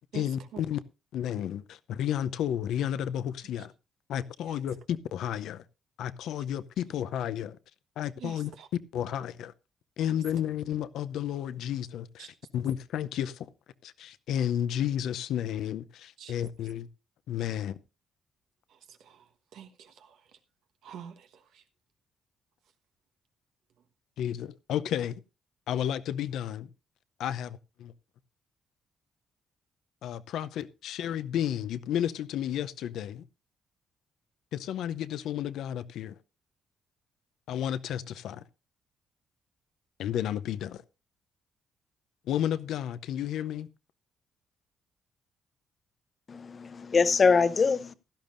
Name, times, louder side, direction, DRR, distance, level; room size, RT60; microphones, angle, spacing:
voice 1, 0.1-0.8 1.1-3.7 4.1-5.6 6.0-7.6 8.0-8.5 8.9-9.5 10.0-13.5 13.8-16.9 17.3-17.8 24.2-25.2 25.7-26.7 27.2-27.9 30.0-33.2 34.5-36.1 37.5-38.4 40.0-40.8 42.3-43.7, left 10 dB, 80° left, 0.6 m, -32 dB
voice 2, 8.2-8.7 10.1-10.2 12.2-12.3 16.2-16.4 18.7-20.2 20.8-21.6, right 9 dB, 80° right, 1.3 m, -47 dB
voice 3, 46.3-47.9, left 5 dB, 40° left, 0.8 m, -23 dB
16.0 x 12.0 x 2.6 m
cardioid pair, 90°, 0 cm